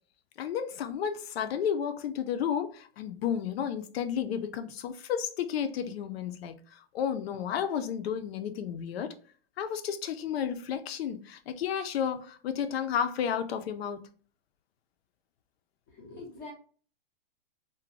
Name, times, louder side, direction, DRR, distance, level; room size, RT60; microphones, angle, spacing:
voice 1, 0.4-9.1 9.6-14.0, left 8 dB, 85° left, 0.5 m, -32 dB
voice 2, 15.9-16.5, left 3 dB, 20° left, 0.4 m, -44 dB
2.6 x 2.1 x 3.0 m
supercardioid pair, 170°, 30 cm